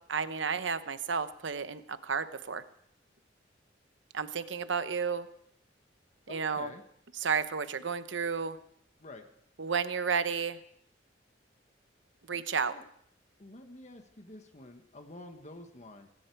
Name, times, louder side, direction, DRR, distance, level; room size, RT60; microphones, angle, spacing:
voice 1, 0.1-2.6 4.1-5.3 6.3-6.7 7.2-8.6 9.6-10.6 12.3-12.7, right 6 dB, 75° right, 12 dB, 0.9 m, -32 dB
voice 2, 6.3-6.8 9.0-9.3 12.7-12.8 13.4-16.1, left 2 dB, 40° left, 6 dB, 1.3 m, -48 dB
18.0 x 17.0 x 4.6 m, 0.71 s
head